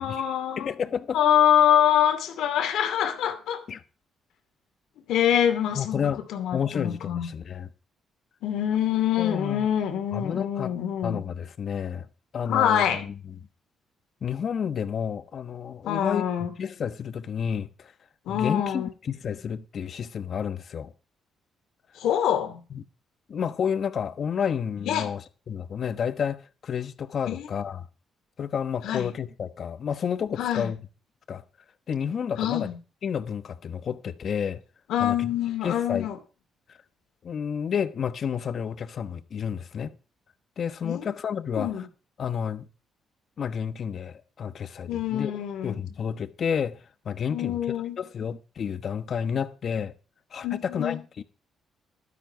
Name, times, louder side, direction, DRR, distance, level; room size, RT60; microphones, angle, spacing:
voice 1, 0.0-0.7 1.1-3.6 5.1-7.3 8.4-11.2 12.5-13.1 15.8-16.5 18.3-18.9 22.0-22.6 24.8-25.1 27.3-27.5 28.8-29.1 30.4-30.7 32.4-32.8 34.9-36.2 40.8-41.0 41.5-41.9 44.9-45.8 47.3-48.0 50.4-51.0, left 10 dB, 80° left, 2.6 m, -25 dB
voice 2, 0.6-1.2 3.7-3.8 5.7-6.2 6.5-7.7 9.2-9.7 10.1-10.7 11.0-12.1 12.3-13.4 14.2-17.9 18.3-20.9 22.7-22.8 23.3-25.2 25.5-27.9 28.4-30.8 31.3-31.4 31.9-32.7 33.0-34.6 35.0-35.3 35.6-36.1 37.2-39.9 40.6-41.7 42.2-42.7 43.4-45.3 45.6-46.8 47.0-47.6 48.0-49.9 50.3-51.2, left 7 dB, 55° left, 1.1 m, -30 dB
12.0 x 10.5 x 4.8 m
cardioid pair, 90°, 0 cm